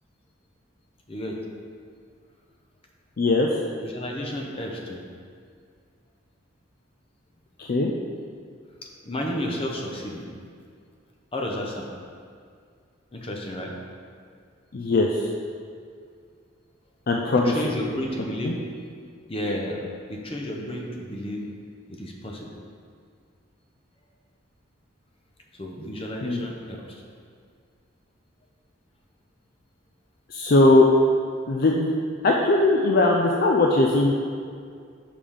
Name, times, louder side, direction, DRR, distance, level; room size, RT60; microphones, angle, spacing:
voice 1, 3.2-3.5 7.6-7.9 14.7-15.3 17.1-17.6 18.4-18.5 26.2-26.4 30.3-30.9 31.5-31.9 32.2-34.1, left 2 dB, 50° left, 0 dB, 0.4 m, -19 dB
voice 2, 3.8-5.0 9.0-10.3 11.3-11.9 13.1-13.7 17.4-18.6 19.3-19.8 20.1-21.4 21.9-22.5 25.6-27.0 33.9-34.0, left 1 dB, 30° left, 0 dB, 0.8 m, -32 dB
5.2 x 5.1 x 5.5 m, 2.2 s
head